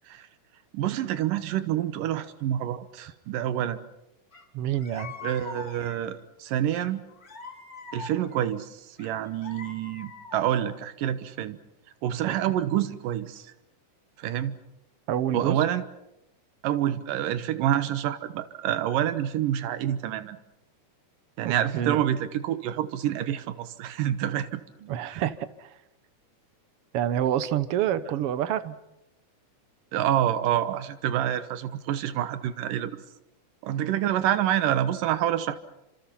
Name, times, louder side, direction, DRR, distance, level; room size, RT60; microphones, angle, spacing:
voice 1, 0.7-3.8 5.2-7.0 7.9-11.6 12.0-13.5 14.2-14.6 15.3-15.8 16.6-20.4 21.4-24.6 25.0-25.2 29.9-33.0 33.6-35.6, right 11 dB, 85° right, 12 dB, 2.8 m, -27 dB
sound 1, 4.3-4.4 4.8-6.2 6.7-8.5 9.0-10.8, left 4 dB, 30° left, 2.9 m, -43 dB
voice 2, 4.5-5.1 12.3-12.4 15.1-15.6 21.4-22.0 24.8-25.8 26.9-28.8, right 11 dB, 65° right, 14 dB, 1.5 m, -28 dB
29.0 x 26.5 x 5.8 m, 0.88 s
omnidirectional pair, 3.7 m